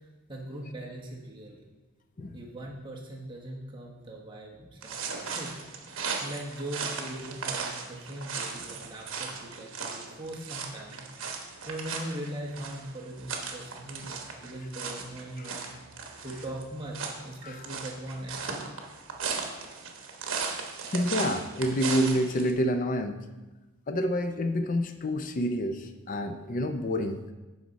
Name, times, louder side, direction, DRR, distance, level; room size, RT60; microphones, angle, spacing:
voice 1, 0.3-1.6 2.3-5.5 6.2-11.1 11.7-15.7 16.2-18.7, right 1 dB, 20° right, -2 dB, 1.0 m, -40 dB
sound 1, 4.8-22.5, right 5 dB, 65° right, 1.1 m, -37 dB
voice 2, 20.9-23.2 23.9-27.2, equal, 40° left, 8 dB, 0.5 m, -28 dB
12.5 x 5.0 x 4.0 m, 1.1 s
head